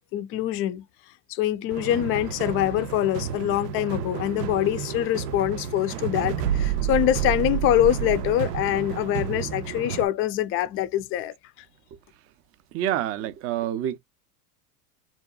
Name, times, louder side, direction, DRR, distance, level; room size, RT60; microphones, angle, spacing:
voice 1, 0.1-0.8 1.3-11.3, left 12 dB, 30° left, 0.4 m, -24 dB
sound 1, 1.7-10.1, right 9 dB, 85° right, 0.5 m, -30 dB
voice 2, 12.7-14.0, right 11 dB, 30° right, 0.4 m, -27 dB
2.8 x 2.4 x 2.2 m
hypercardioid pair, 100°, 47 cm